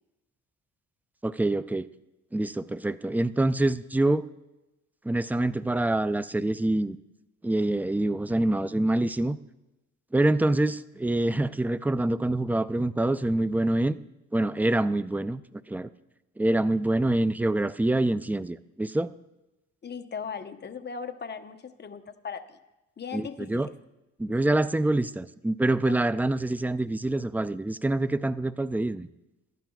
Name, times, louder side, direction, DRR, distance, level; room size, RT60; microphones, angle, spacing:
voice 1, 1.2-1.9 2.3-4.2 5.0-7.0 7.4-9.4 10.1-14.0 14.3-15.4 15.7-15.9 16.4-19.1 23.1-23.7 24.2-29.1, right 2 dB, 5° right, 15 dB, 0.3 m, -26 dB
voice 2, 19.8-22.6 23.0-23.7 25.9-26.0, left 6 dB, 35° left, 8 dB, 0.9 m, -38 dB
24.0 x 12.0 x 2.4 m, 0.98 s
cardioid pair, 90°, 30 cm